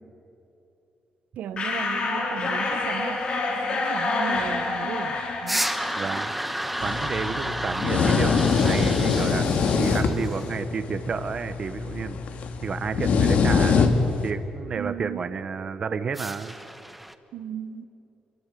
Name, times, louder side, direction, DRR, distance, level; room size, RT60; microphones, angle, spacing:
voice 1, 1.4-3.2 3.7-5.7 14.8-15.3 17.3-17.8, right 9 dB, 80° right, 1.2 m, -35 dB
sound 1, 1.6-7.1, left 3 dB, 40° left, 4.5 m, -28 dB
sound 2, 5.5-10.5 16.1-17.1, right 1 dB, 5° right, 1.1 m, -31 dB
voice 2, 6.0-6.3 6.8-12.2 12.6-13.9 14.2-16.5, right 5 dB, 35° right, 1.0 m, -31 dB
sound 3, 6.8-14.3, left 5 dB, 60° left, 2.3 m, -24 dB
28.0 x 24.0 x 8.5 m
cardioid pair, 155°, 3 cm